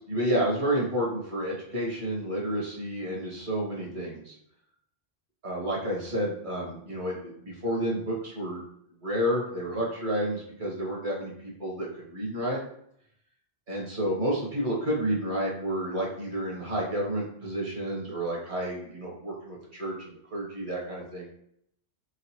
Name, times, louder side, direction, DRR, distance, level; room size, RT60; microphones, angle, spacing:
voice 1, 0.1-4.3 5.4-8.6 9.0-12.6 13.7-19.9 20.3-21.3, right 1 dB, 50° right, -4 dB, 1.6 m, -30 dB
3.9 x 3.7 x 3.0 m, 0.71 s
omnidirectional pair, 1.1 m